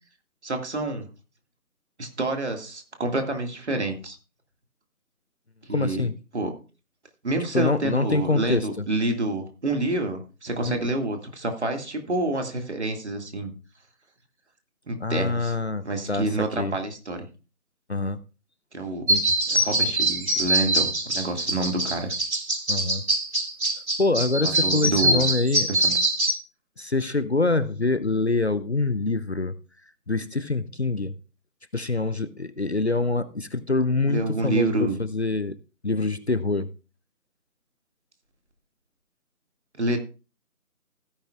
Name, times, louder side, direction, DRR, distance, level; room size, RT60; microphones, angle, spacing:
voice 1, 0.4-1.1 2.0-4.2 5.7-6.1 6.3-6.5 7.2-13.5 14.9-15.6 15.8-17.3 18.7-19.1 19.5-22.1 24.4-25.3 25.7-26.0 34.1-35.0 39.7-40.0, right 2 dB, 50° right, 2.1 m, -28 dB
voice 2, 5.7-6.1 7.5-8.9 10.7-10.8 15.0-16.7 17.9-18.2 19.1-19.3 22.7-23.0 24.0-25.7 26.8-29.5 30.1-31.1 31.7-35.6 35.8-36.7, left 3 dB, 45° left, 0.6 m, -25 dB
sound 1, 19.1-26.3, right 1 dB, 70° right, 2.6 m, -23 dB
16.0 x 9.9 x 2.4 m
figure-of-eight pair, 165°, 45 cm